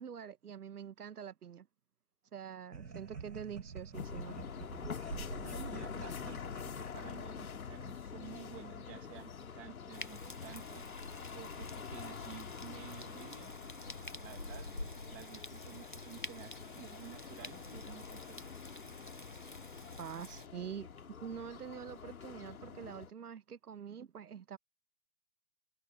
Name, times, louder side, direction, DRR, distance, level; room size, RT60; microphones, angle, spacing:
voice 1, 0.0-1.7 2.3-4.3 20.0-20.9 21.2-24.6, right 8 dB, 65° right, 1.1 m, -45 dB
sound 1, 2.7-7.5, right 5 dB, 90° right, 4.6 m, -48 dB
sound 2, 3.9-23.1, left 7 dB, 60° left, 2.5 m, -46 dB
voice 2, 5.4-10.9 11.3-13.5 14.2-18.5, right 15 dB, 5° right, 1.3 m, -52 dB
sound 3, 9.9-20.5, left 2 dB, 35° left, 0.5 m, -48 dB
hypercardioid pair, 175°, 49 cm